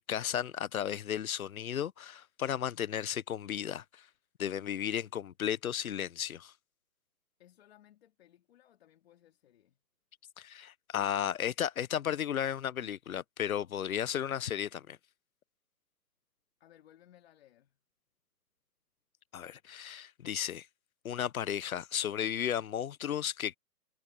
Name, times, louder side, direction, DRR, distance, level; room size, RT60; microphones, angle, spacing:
voice 1, 0.0-4.0 4.4-6.5 10.4-15.0 19.3-20.7 21.0-23.6, left 9 dB, 55° left, 1.0 m, -34 dB
voice 2, 7.4-9.8 16.6-17.8, left 12 dB, 40° left, 2.4 m, -61 dB
hypercardioid pair, 160°, 50 cm